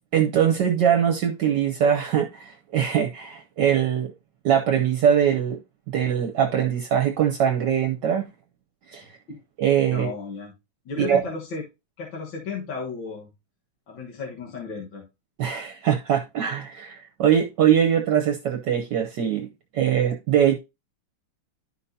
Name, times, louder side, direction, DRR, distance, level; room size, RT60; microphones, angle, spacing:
voice 1, 0.1-4.1 4.4-5.6 5.9-8.3 8.9-9.2 9.6-10.1 11.0-11.2 15.4-19.5 19.7-20.6, right 9 dB, 65° right, 1.4 m, -22 dB
voice 2, 9.9-10.5 10.9-11.6 12.0-13.3 13.9-15.1, left 4 dB, 70° left, 2.1 m, -34 dB
11.5 x 5.6 x 2.7 m
omnidirectional pair, 2.2 m